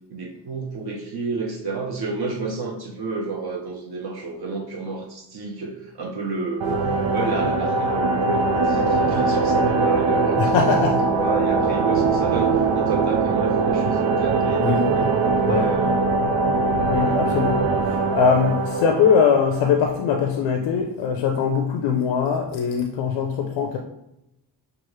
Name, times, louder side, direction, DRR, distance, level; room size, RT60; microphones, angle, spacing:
voice 1, 0.1-6.8 7.1-16.1 16.9-17.2, right 4 dB, 55° right, -1 dB, 0.9 m, -30 dB
sound 1, 6.6-20.2, right 3 dB, 90° right, 0.6 m, -21 dB
voice 2, 10.4-11.0 14.6-14.8 15.4-15.7 16.9-17.6 17.9-23.8, left 6 dB, 85° left, 2 dB, 0.6 m, -21 dB
6.0 x 2.5 x 3.1 m, 0.85 s
cardioid pair, 85°, 45 cm